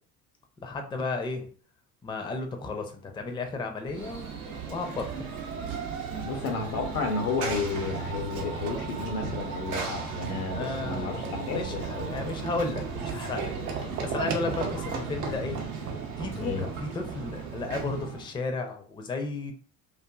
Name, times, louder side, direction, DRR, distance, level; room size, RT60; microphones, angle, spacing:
voice 1, 0.6-1.5 2.0-4.3 4.7-5.3 10.5-15.6 16.2-19.5, left 3 dB, 10° left, 4 dB, 0.5 m, -34 dB
Run / Train, 3.9-18.3, right 5 dB, 85° right, 0.7 m, -35 dB
voice 2, 6.2-12.4 16.4-16.7, left 4 dB, 75° left, 5 dB, 0.8 m, -32 dB
2.5 x 2.5 x 2.3 m, 0.43 s
hypercardioid pair, 60°, 43 cm